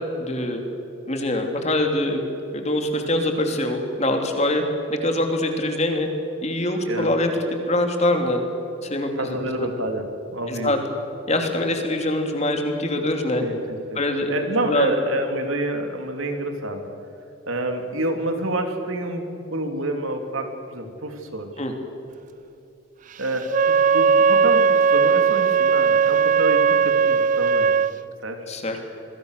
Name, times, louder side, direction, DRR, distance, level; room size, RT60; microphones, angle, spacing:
voice 1, 0.2-0.6 1.1-2.2 2.5-4.6 4.9-6.1 6.4-7.4 7.7-8.4 8.8-9.7 10.5-10.8 11.3-13.4 13.9-14.3 14.7-14.9 21.6-21.7 28.5-28.8, left 1 dB, 30° left, 4 dB, 3.0 m, -24 dB
voice 2, 9.1-10.7 13.4-14.0 14.3-16.9 17.5-21.5 23.2-27.7 28.2-28.4, right 1 dB, 80° right, 5 dB, 3.2 m, -28 dB
Wind instrument woodwind instrument, 23.5-27.9, right 6 dB, 40° right, 0.4 m, -18 dB
27.5 x 21.0 x 6.8 m, 2.9 s
head